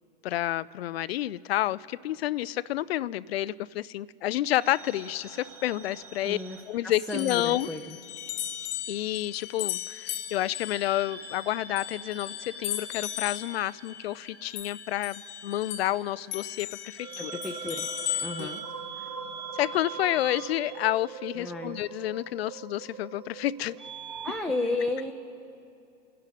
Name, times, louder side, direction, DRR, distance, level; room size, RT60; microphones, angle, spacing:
voice 1, 0.2-6.4 6.7-7.7 8.9-17.3 18.4-18.5 19.5-23.8, left 14 dB, 80° left, 0.5 m, -30 dB
sound 1, 4.6-7.4 7.7-8.9 10.1-24.4, right 5 dB, 40° right, 2.8 m, -42 dB
voice 2, 6.2-6.6 6.8-8.0 17.2-17.9 18.2-18.6 21.4-21.8 24.2-25.1, left 2 dB, ahead, 0.6 m, -33 dB
sound 2, 7.1-16.0 16.3-18.6, left 12 dB, 35° left, 1.0 m, -37 dB
27.0 x 11.0 x 4.1 m
hypercardioid pair, 120°, 30 cm